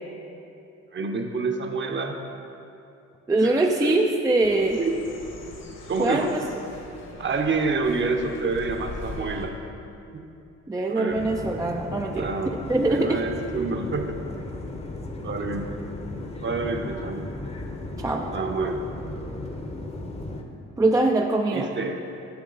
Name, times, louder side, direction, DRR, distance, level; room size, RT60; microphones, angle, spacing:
voice 1, 0.9-2.2 3.4-3.9 4.8-5.0 5.9-6.3 7.2-9.5 10.1-10.2 10.9-11.2 12.1-12.5 12.9-14.1 15.2-15.8 16.4-17.3 18.3-18.8 21.5-21.9, right 4 dB, 40° right, 4 dB, 0.9 m, -28 dB
voice 2, 3.3-4.8 6.0-6.4 10.7-13.2 18.0-18.3 20.8-21.7, right 2 dB, 10° right, 2 dB, 0.4 m, -23 dB
sound 1, 4.4-9.5, left 2 dB, 60° left, 1.3 m, -40 dB
sound 2, 11.1-20.4, left 2 dB, 20° left, 0.8 m, -35 dB
9.7 x 6.2 x 4.0 m, 2.7 s
cardioid pair, 90°, 30 cm